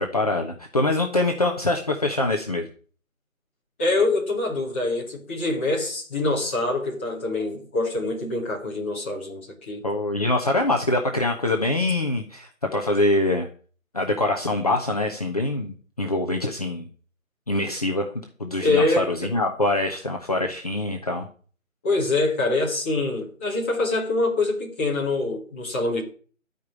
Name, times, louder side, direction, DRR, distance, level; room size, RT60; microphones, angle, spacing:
voice 1, 0.0-2.7 9.8-13.5 13.9-16.9 17.5-18.1 18.4-21.3, left 2 dB, 30° left, 2 dB, 1.0 m, -24 dB
voice 2, 3.8-9.8 18.6-19.3 21.8-26.0, left 2 dB, 10° left, -5 dB, 1.6 m, -25 dB
13.5 x 5.4 x 8.8 m, 0.43 s
figure-of-eight pair, 160°, 41 cm